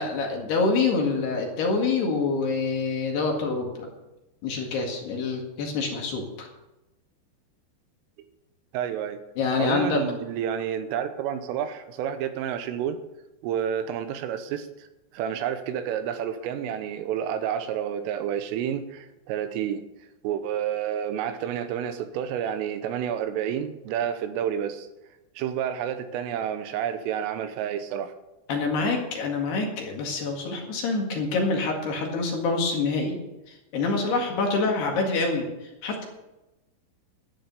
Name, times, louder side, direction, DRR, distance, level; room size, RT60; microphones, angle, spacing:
voice 1, 0.0-3.9 4.4-6.5 9.4-10.0 28.5-33.2 33.7-35.5 35.8-36.1, left 3 dB, 60° left, 1 dB, 3.7 m, -26 dB
voice 2, 8.7-9.2 9.6-13.0 13.4-14.7 15.1-19.8 20.2-24.9 25.4-28.1, right 9 dB, 80° right, 9 dB, 3.4 m, -29 dB
12.5 x 10.0 x 6.7 m, 0.98 s
omnidirectional pair, 5.9 m